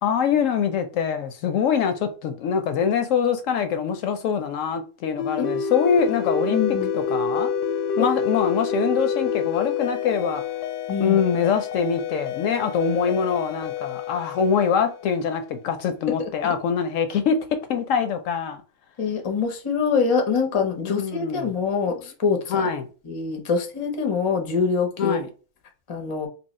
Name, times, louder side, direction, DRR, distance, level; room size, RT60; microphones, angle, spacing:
voice 1, 0.0-6.6 6.9-7.5 8.0-10.4 11.0-17.4 17.7-18.6 20.8-21.5 21.9-22.0 22.5-22.9 25.0-25.3, left 7 dB, 70° left, 0.8 m, -24 dB
sound 1, 5.2-15.5, left 6 dB, 90° left, 1.1 m, -28 dB
voice 2, 6.5-6.9 8.0-8.1 10.9-11.2 19.0-22.6 23.1-25.2 25.9-26.3, left 5 dB, 40° left, 0.4 m, -24 dB
2.9 x 2.7 x 4.1 m
omnidirectional pair, 1.6 m